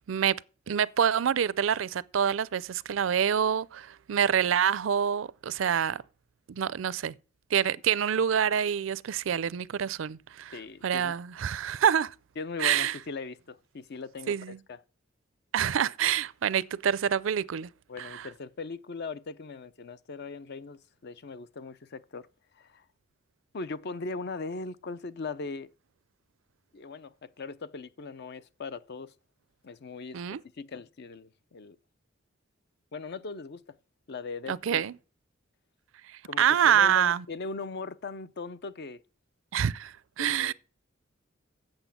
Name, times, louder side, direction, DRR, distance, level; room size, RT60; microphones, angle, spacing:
voice 1, 0.7-6.0 6.5-7.1 7.5-10.5 10.8-12.1 12.6-13.0 14.3-14.6 15.5-17.7 18.0-18.3 30.1-30.4 34.5-34.9 36.4-37.2 39.5-40.5, right 8 dB, 70° right, 0.4 m, -26 dB
voice 2, 10.5-11.2 12.4-14.8 17.9-22.3 22.5-22.8 23.5-25.7 26.7-29.1 29.6-30.2 30.6-31.8 32.9-33.8 34.1-34.8 36.2-39.0 40.2-40.5, left 4 dB, 55° left, 0.6 m, -39 dB
8.0 x 7.4 x 7.1 m
head